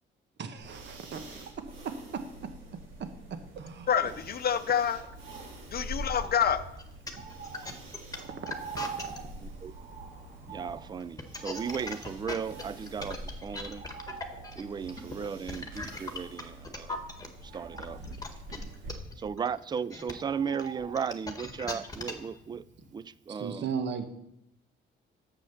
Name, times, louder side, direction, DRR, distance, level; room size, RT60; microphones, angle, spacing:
voice 1, 0.4-1.5 2.1-2.2 3.6-3.9 8.1-8.3 18.0-18.2 18.5-18.7 23.3-24.1, right 6 dB, 65° right, 1.2 m, -37 dB
sound 1, 0.6-18.9, right 1 dB, 80° right, 2.9 m, -46 dB
voice 2, 3.9-5.0 5.7-6.7, left 8 dB, 50° left, 0.6 m, -27 dB
Bird, 4.0-23.2 23.5-23.6, right 5 dB, 40° right, 1.9 m, -47 dB
sound 2, 6.6-9.2 11.0-17.3 17.8-22.3, left 3 dB, 20° left, 1.6 m, -39 dB
voice 3, 9.4-9.7 10.5-13.9 14.6-17.0 17.4-18.0 19.2-22.6 22.9-23.7, right 6 dB, 20° right, 0.3 m, -36 dB
8.8 x 7.4 x 7.0 m
cardioid pair, 90°, 20 cm